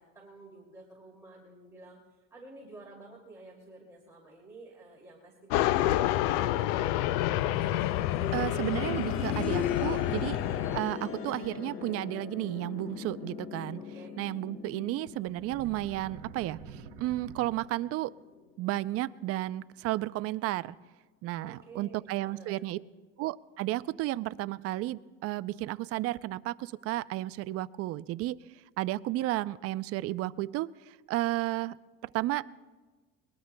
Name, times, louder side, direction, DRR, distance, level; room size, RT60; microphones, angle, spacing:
voice 1, 0.0-2.0 2.3-7.3 13.8-14.1 21.4-22.7, right 2 dB, 10° right, -4 dB, 2.6 m, -51 dB
sound 1, 5.5-10.8, left 14 dB, 85° left, 0.5 m, -29 dB
sound 2, 7.4-18.2 18.5-18.6 19.5-19.6, left 8 dB, 45° left, 1.3 m, -38 dB
voice 2, 8.3-10.4 10.7-13.8 14.2-18.1 18.6-20.8 21.2-22.8 23.2-28.4 28.8-31.8 32.1-32.5, right 16 dB, 50° right, 16 dB, 0.5 m, -33 dB
sound 3, 15.3-18.1, right 11 dB, 80° right, 0.8 m, -48 dB
22.5 x 20.5 x 2.2 m, 1.3 s
cardioid pair, 125°, 30 cm